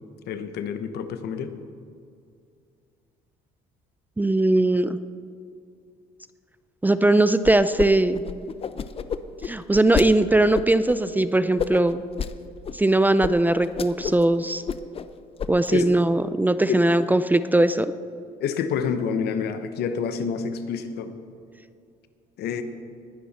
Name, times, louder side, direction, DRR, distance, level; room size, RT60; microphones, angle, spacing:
voice 1, 0.2-1.5 15.7-15.9 16.7-16.8 18.4-21.1 22.4-22.6, left 7 dB, 75° left, 9 dB, 1.1 m, -28 dB
voice 2, 4.2-5.0 6.8-8.2 9.4-12.0 12.7-14.6 15.5-17.9, right 2 dB, 10° right, 13 dB, 0.4 m, -20 dB
sound 1, 7.4-7.9 8.1-10.1 10.5-11.0 11.6-12.3 12.6-12.8 13.2-13.3 13.6-14.2 14.5-15.1 15.4-15.7, left 7 dB, 35° left, 0.6 m, -29 dB
20.0 x 10.0 x 4.3 m, 2.4 s
cardioid pair, 110°, 17 cm